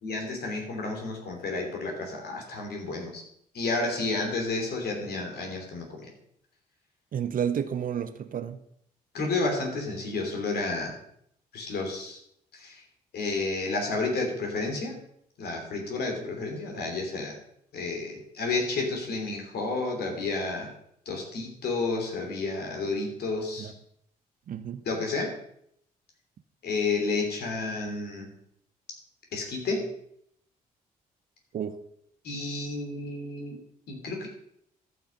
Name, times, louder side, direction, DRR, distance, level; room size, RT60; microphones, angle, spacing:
voice 1, 0.0-3.2 3.5-6.1 9.1-11.0 11.5-12.2 12.5-12.8 13.1-15.0 15.4-17.3 17.7-20.7 21.0-23.7 24.9-25.4 26.6-28.3 29.3-29.9 32.2-33.6 33.9-34.3, left 3 dB, 55° left, 2 dB, 2.9 m, -31 dB
voice 2, 7.1-8.6 23.6-23.7 24.5-24.8 31.5-31.8, right 8 dB, 45° right, 12 dB, 0.8 m, -31 dB
13.5 x 6.0 x 5.3 m, 0.72 s
figure-of-eight pair, 40°, 19 cm